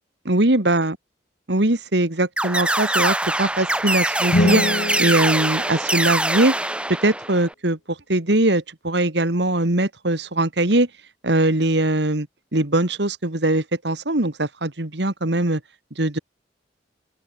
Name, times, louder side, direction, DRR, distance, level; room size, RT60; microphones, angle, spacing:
voice 1, 0.2-1.0 1.5-4.6 5.0-6.6 7.0-10.9 11.2-15.6 16.0-16.2, right 1 dB, 70° right, 2.3 m, -21 dB
sound 1, 2.4-7.5, right 1 dB, 5° right, 1.5 m, -23 dB
sound 2, 4.2-6.5, left 1 dB, 65° left, 1.7 m, -25 dB
open air
head